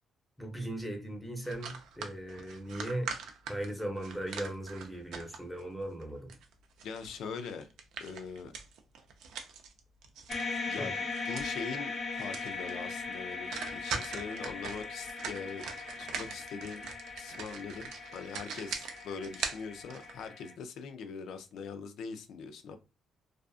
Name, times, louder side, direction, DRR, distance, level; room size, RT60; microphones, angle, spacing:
voice 1, 0.4-3.1 3.5-6.3 10.8-10.9, right 1 dB, 5° left, 0.8 m, -38 dB
Knife Cutting Plastic Bottle, 1.4-5.6 6.0-10.7 11.0-11.6 11.9-12.0 12.2-12.7 13.0-13.1 13.5-20.3, right 6 dB, 80° right, 0.4 m, -42 dB
voice 2, 6.8-7.7 8.0-8.5 10.7-15.6 16.0-16.8 17.1-22.8, left 5 dB, 80° left, 0.4 m, -42 dB
sound 1, 10.3-20.5, left 4 dB, 45° left, 1.0 m, -40 dB
2.5 x 2.4 x 2.4 m
cardioid pair, 90°, 0 cm